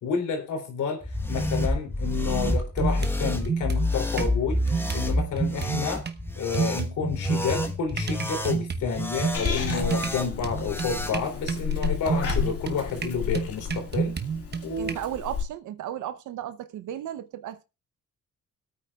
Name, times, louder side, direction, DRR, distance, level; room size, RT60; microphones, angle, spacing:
voice 1, 0.0-4.6 4.9-6.0 6.4-14.2 14.6-14.9, left 6 dB, 80° left, 3.2 m, -30 dB
sound 1, 1.0-11.2, left 1 dB, 5° left, 1.2 m, -29 dB
sound 2, 2.8-4.3 4.7-6.2 6.5-15.0, right 6 dB, 35° right, 1.1 m, -30 dB
Purr / Meow, 9.3-15.4, left 7 dB, 50° left, 2.2 m, -32 dB
voice 2, 14.8-17.6, right 11 dB, 75° right, 0.8 m, -35 dB
25.0 x 8.8 x 2.4 m
cardioid pair, 90°, 30 cm